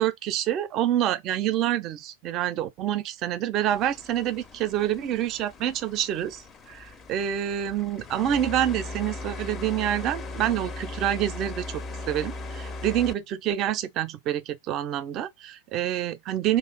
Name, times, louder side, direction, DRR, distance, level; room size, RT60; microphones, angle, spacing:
voice 1, 0.0-6.4 6.7-11.7 12.1-16.6, right 11 dB, 35° right, 0.4 m, -27 dB
sound 1, 3.7-13.1, left 2 dB, 25° left, 0.4 m, -38 dB
2.4 x 2.4 x 4.1 m
figure-of-eight pair, 90°, 0 cm